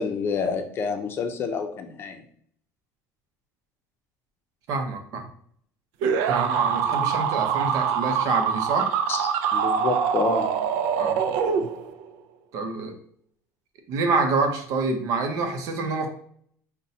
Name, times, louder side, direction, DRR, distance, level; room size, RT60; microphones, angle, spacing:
voice 1, 0.0-2.2 9.1-10.5, left 5 dB, 35° left, 5 dB, 0.5 m, -28 dB
voice 2, 4.7-5.3 6.3-8.9 11.0-11.2 12.5-12.9 13.9-16.1, right 3 dB, 65° right, 5 dB, 0.7 m, -26 dB
sound 1, 6.0-12.1, right 7 dB, 90° right, 0.3 m, -24 dB
5.3 x 2.2 x 2.7 m, 0.62 s
cardioid pair, 130°, 6 cm